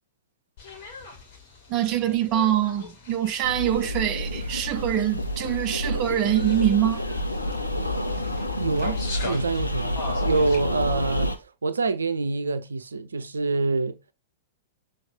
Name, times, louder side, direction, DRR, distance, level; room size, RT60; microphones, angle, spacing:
sound 1, 0.6-10.6, left 3 dB, 50° left, 2.5 m, -42 dB
voice 1, 1.7-7.1, right 11 dB, 35° right, 0.7 m, -24 dB
sound 2, 3.4-11.4, left 1 dB, 85° left, 0.9 m, -29 dB
voice 2, 8.6-14.0, right 3 dB, 75° right, 0.7 m, -26 dB
7.0 x 3.6 x 3.8 m
figure-of-eight pair, 100°, 0 cm